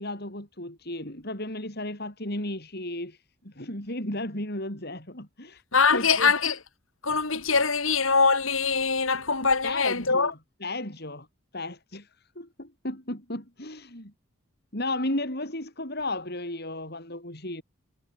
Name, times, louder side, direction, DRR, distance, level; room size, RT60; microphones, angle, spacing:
voice 1, 0.0-5.6 5.9-6.3 9.6-11.3 11.5-12.1 12.3-14.1 14.7-17.6, left 1 dB, 45° left, 6.6 m, -34 dB
voice 2, 5.7-6.6 7.0-10.3, left 4 dB, 70° left, 3.6 m, -23 dB
head